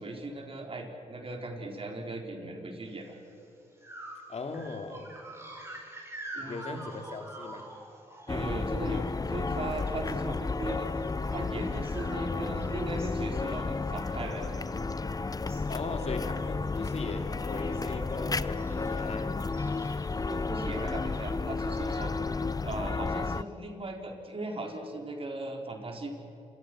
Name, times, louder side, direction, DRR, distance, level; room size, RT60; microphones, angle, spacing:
voice 1, 0.0-3.2 6.3-6.8 8.3-10.9 11.3-14.5 20.3-22.1 22.6-26.1, right 2 dB, 45° right, 2 dB, 4.4 m, -38 dB
sound 1, 3.1-3.3 3.8-9.9 10.2-15.0 15.3-15.8 16.1-16.4 16.7-17.9 18.6-19.1 19.5-20.8, right 1 dB, 20° right, 6.4 m, -48 dB
voice 2, 4.3-5.1 6.5-7.7 15.7-19.4, left 3 dB, 55° left, 5 dB, 2.8 m, -38 dB
sound 2, 8.3-23.4, left 3 dB, 30° left, 0.7 m, -32 dB
28.0 x 23.0 x 6.3 m, 2.8 s
cardioid pair, 60°, 13 cm